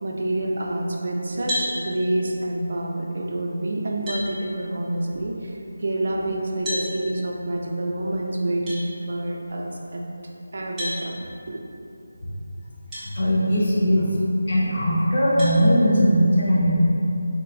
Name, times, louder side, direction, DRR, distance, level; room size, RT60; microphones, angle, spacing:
voice 1, 0.0-10.0 10.5-11.6, right 1 dB, 50° right, 0 dB, 0.4 m, -27 dB
sound 1, 1.5-1.7 3.4-3.5 4.1-4.3 6.6-6.9 8.7-8.8 10.8-11.0 12.9-13.1 13.7-13.8 15.4-15.6, equal, 5° right, 0.7 m, -29 dB
voice 2, 13.2-14.1 14.5-16.8, equal, 40° left, -7 dB, 0.7 m, -19 dB
3.9 x 2.2 x 3.8 m, 2.8 s
figure-of-eight pair, 175°, 0 cm